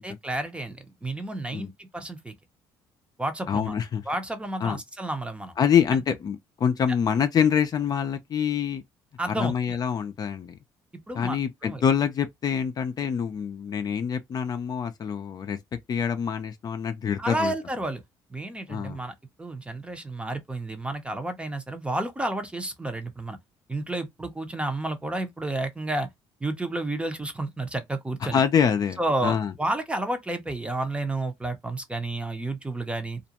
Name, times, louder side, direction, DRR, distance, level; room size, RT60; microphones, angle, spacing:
voice 1, 0.0-2.3 3.2-3.8 4.1-5.5 9.2-9.8 11.1-11.4 11.6-11.8 17.2-18.0 18.3-23.4 23.7-26.1 26.4-28.4 29.0-33.2, right 2 dB, 10° right, 0.7 m, -31 dB
voice 2, 3.5-4.0 4.6-4.8 5.6-8.8 9.3-10.6 11.1-15.6 15.9-17.5 18.7-19.0 28.3-29.5, left 7 dB, 45° left, 0.5 m, -25 dB
2.4 x 2.1 x 2.8 m
cardioid pair, 95°, 10 cm